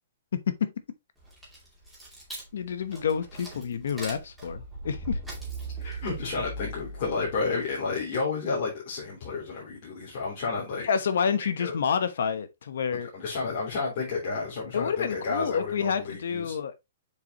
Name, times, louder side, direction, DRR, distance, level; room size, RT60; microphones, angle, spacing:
voice 1, 0.3-0.7 2.5-5.2 10.8-13.1 14.7-16.7, left 7 dB, 70° left, 1.0 m, -28 dB
sound 1, 1.2-7.7, right 2 dB, ahead, 2.5 m, -39 dB
voice 2, 5.8-10.9 11.6-11.7 13.1-16.5, left 4 dB, 40° left, 3.3 m, -31 dB
6.8 x 5.0 x 3.0 m
hypercardioid pair, 165°, 0 cm